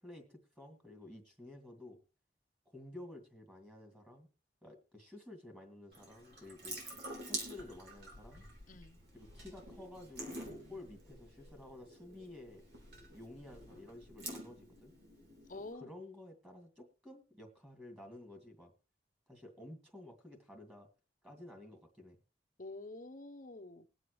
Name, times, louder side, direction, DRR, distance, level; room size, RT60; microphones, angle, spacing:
voice 1, 0.0-2.0 2.7-4.3 4.6-6.8 7.2-8.4 9.1-12.6 13.1-14.9 15.5-18.7 19.3-20.9 21.2-22.2, left 1 dB, 10° right, 3 dB, 2.3 m, -52 dB
Water tap faucet / Sink (filling or washing) / Drip, 5.9-15.7, right 1 dB, 65° right, 3.7 m, -48 dB
voice 2, 8.7-9.0 15.5-15.9 22.6-23.9, left 2 dB, 45° left, 7 dB, 0.9 m, -48 dB
21.0 x 7.8 x 3.2 m, 0.34 s
head